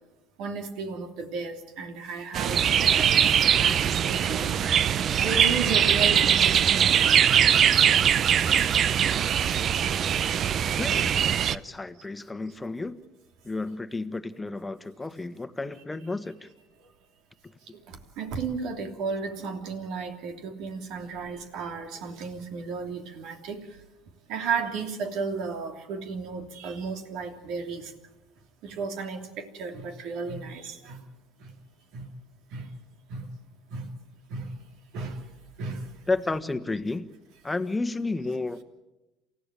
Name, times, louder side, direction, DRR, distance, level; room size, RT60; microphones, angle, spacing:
voice 1, 0.4-4.5 5.2-7.2 8.4-8.5 18.2-23.6 24.3-27.8 28.6-31.0 31.9-32.0 32.5-32.6 33.1-33.2 33.7-33.9 34.3-34.5 34.9-35.2 35.6-35.9, right 4 dB, 65° right, 6 dB, 3.0 m, -34 dB
sound 1, 2.3-11.6, right 9 dB, 45° right, 0.7 m, -22 dB
voice 2, 10.8-11.2 11.5-13.0 13.4-16.5 36.1-37.1 37.4-38.6, left 3 dB, 15° left, 10 dB, 1.5 m, -31 dB
28.0 x 15.0 x 9.1 m, 1.0 s
hypercardioid pair, 70°, 0 cm